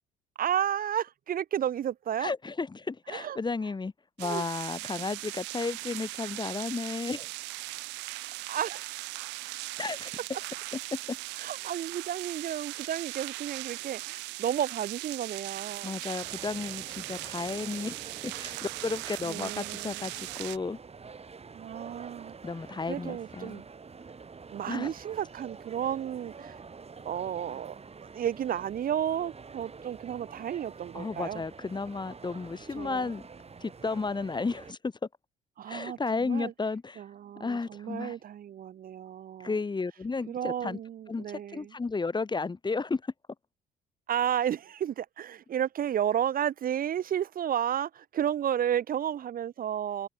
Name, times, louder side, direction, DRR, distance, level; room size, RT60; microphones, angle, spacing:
voice 1, 0.4-2.3 3.1-3.4 4.2-4.5 8.5-8.9 11.4-16.0 19.2-20.0 21.5-22.3 22.9-23.7 24.5-26.6 27.0-27.7 28.0-31.4 32.8-33.1 35.6-36.5 37.0-39.5 40.3-41.7 44.1-50.1, right 10 dB, 50° right, 1.0 m, -32 dB
voice 2, 2.2-3.9 4.2-7.3 9.8-10.1 10.7-10.8 11.1-11.2 15.8-17.9 18.2-20.8 22.4-23.6 24.7-24.9 30.9-33.2 33.6-34.9 35.7-37.0 37.4-38.2 39.4-40.8 41.1-43.0, left 4 dB, 25° left, 1.7 m, -33 dB
sound 1, 4.2-20.6, right 24 dB, 65° right, 0.4 m, -39 dB
sound 2, 16.2-34.7, right 5 dB, 35° right, 6.1 m, -48 dB
hypercardioid pair, 55°, 19 cm